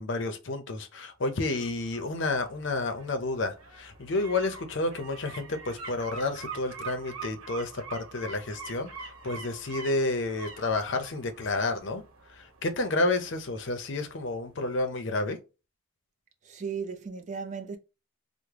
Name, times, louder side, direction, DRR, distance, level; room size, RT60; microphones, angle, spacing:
voice 1, 0.0-12.0 12.3-15.4, left 2 dB, 55° left, 0.5 m, -30 dB
sound 1, 1.3-14.1 14.5-14.6, right 4 dB, 80° right, 0.9 m, -45 dB
voice 2, 16.4-17.8, right 5 dB, 35° right, 0.4 m, -36 dB
3.4 x 2.0 x 3.2 m
head